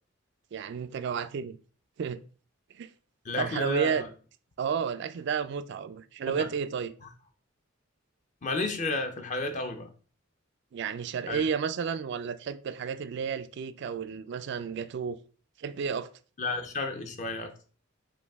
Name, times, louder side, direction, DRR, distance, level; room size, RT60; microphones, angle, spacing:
voice 1, 0.5-1.6 2.0-2.2 2.7-2.9 3.4-4.0 4.6-6.9 10.7-15.2 15.6-16.1, right 6 dB, 55° right, 0.3 m, -32 dB
voice 2, 3.2-4.1 6.4-6.5 8.4-9.9 11.3-11.4 16.4-17.5, left 2 dB, 35° left, 0.5 m, -32 dB
5.0 x 2.6 x 3.5 m
head